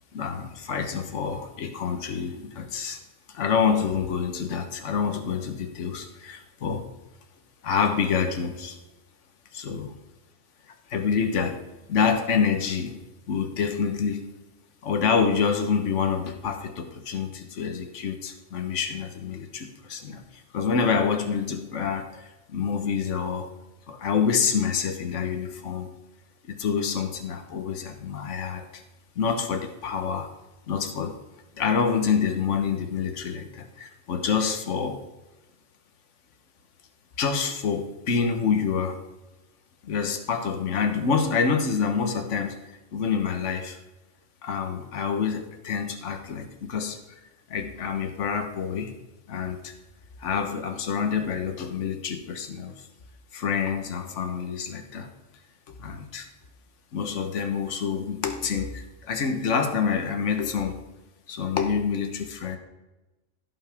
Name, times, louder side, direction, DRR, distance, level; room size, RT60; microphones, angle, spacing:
voice 1, 0.1-3.0 3.3-6.9 7.6-8.8 9.5-9.9 10.9-13.0 13.3-14.3 14.8-23.5 23.9-25.9 26.5-28.8 29.2-30.3 30.7-31.2 31.6-35.0 37.2-39.0 39.8-42.6 42.9-43.8 44.4-47.0 47.5-48.9 49.3-49.7 50.2-52.9 53.3-55.1 55.8-56.3 56.9-60.8 61.3-62.6, left 6 dB, 65° left, 6 dB, 1.4 m, -27 dB
16.0 x 5.9 x 3.5 m, 1.1 s
omnidirectional pair, 1.4 m